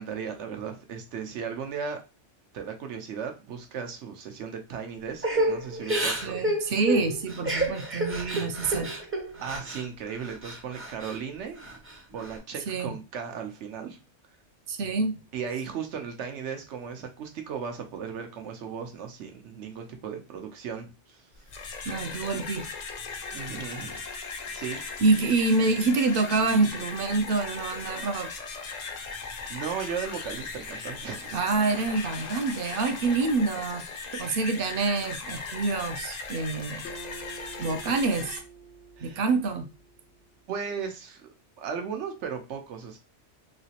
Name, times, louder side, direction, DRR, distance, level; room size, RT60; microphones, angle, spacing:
voice 1, 0.0-2.0 2.5-6.4 9.4-11.8 12.1-14.0 15.3-21.3 23.3-24.0 24.5-25.0 29.2-31.4 34.1-34.3 39.0-39.2 40.5-43.0, right 6 dB, 85° right, 1.0 m, -36 dB
Crying sobbing / Breathing, 5.2-9.8 10.2-11.2 11.6-12.3, right 1 dB, 15° right, 0.5 m, -30 dB
voice 2, 6.0-8.9 12.7-12.9 14.7-15.2 21.8-22.7 25.0-28.3 31.3-33.8 34.2-36.8 37.6-38.4 39.0-39.7, right 3 dB, 60° right, 0.7 m, -26 dB
sound 1, 21.3-38.4, left 4 dB, 50° left, 0.5 m, -38 dB
Acoustic guitar, 36.8-40.3, right 3 dB, 75° left, 0.9 m, -47 dB
3.2 x 2.9 x 2.8 m
omnidirectional pair, 1.2 m